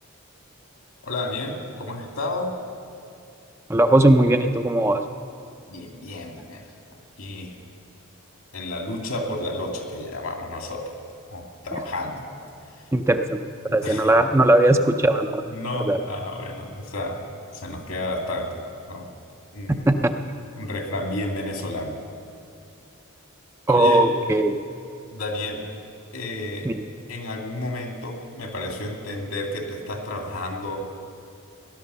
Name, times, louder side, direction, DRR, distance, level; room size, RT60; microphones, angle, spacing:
voice 1, 1.0-2.5 5.7-6.7 7.2-7.6 8.5-11.0 11.3-12.3 13.8-14.2 15.5-17.2 17.5-19.1 19.5-19.9 20.6-21.9 23.7-24.1 25.1-25.6 26.1-26.7 27.1-30.8, left 1 dB, 75° left, 2 dB, 2.3 m, -31 dB
voice 2, 3.7-5.0 12.9-13.4 13.6-15.4 15.9-16.0 19.7-20.1 23.7-24.5 26.6-26.8, right 1 dB, 10° right, 6 dB, 0.4 m, -19 dB
17.5 x 11.5 x 6.8 m, 2.5 s
head